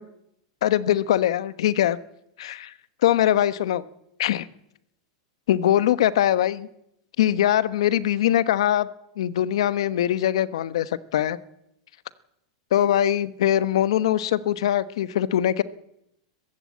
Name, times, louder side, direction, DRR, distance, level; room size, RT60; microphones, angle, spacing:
voice 1, 0.6-2.0 2.4-2.7 3.0-3.8 4.2-4.5 5.5-6.7 7.2-8.9 9.2-11.4 12.7-15.6, left 11 dB, 80° left, 15 dB, 1.2 m, -22 dB
21.0 x 15.0 x 8.5 m, 0.80 s
supercardioid pair, 140°, 3 cm